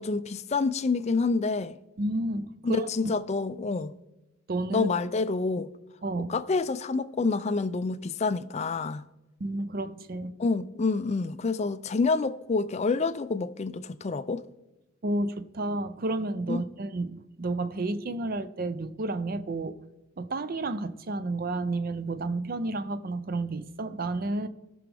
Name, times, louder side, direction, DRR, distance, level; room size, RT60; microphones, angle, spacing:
voice 1, 0.0-1.8 2.6-3.9 4.7-5.7 6.3-9.0 10.4-14.5 16.5-16.6, left 4 dB, 30° left, 0.4 m, -28 dB
voice 2, 2.0-2.9 4.5-4.9 6.0-6.4 9.4-10.3 15.0-19.8 20.2-24.5, right 2 dB, 40° right, 0.5 m, -31 dB
17.5 x 6.1 x 3.4 m
head